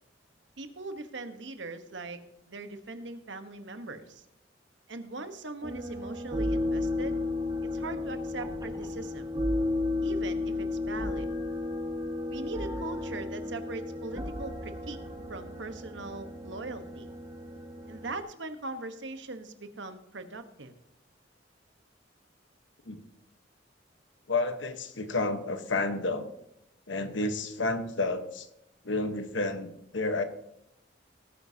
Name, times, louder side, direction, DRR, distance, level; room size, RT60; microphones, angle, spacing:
voice 1, 0.6-2.2 2.5-4.2 4.9-7.2 7.6-9.3 10.0-11.3 12.3-15.0 15.3-17.1 17.9-20.7, right 3 dB, 75° right, 8 dB, 1.2 m, -40 dB
sound 1, 5.6-18.2, left 2 dB, 20° right, 1.7 m, -33 dB
voice 2, 24.3-26.3 26.9-28.5 28.8-30.2, left 2 dB, 90° left, 8 dB, 1.2 m, -30 dB
18.5 x 9.3 x 2.8 m, 0.80 s
head